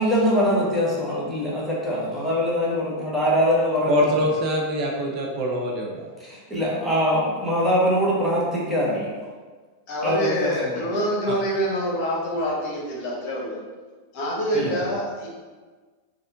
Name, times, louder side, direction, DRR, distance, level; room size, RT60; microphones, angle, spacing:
voice 1, 0.0-4.1 6.2-9.1 10.0-10.8 14.5-14.7, equal, 5° right, -7 dB, 1.2 m, -23 dB
voice 2, 3.8-6.1 11.3-11.4 14.7-14.8, equal, 35° right, 0 dB, 0.5 m, -24 dB
voice 3, 9.9-13.6 14.1-15.3, equal, 45° left, -3 dB, 1.1 m, -26 dB
4.1 x 2.4 x 3.6 m, 1.4 s
figure-of-eight pair, 90°, 0 cm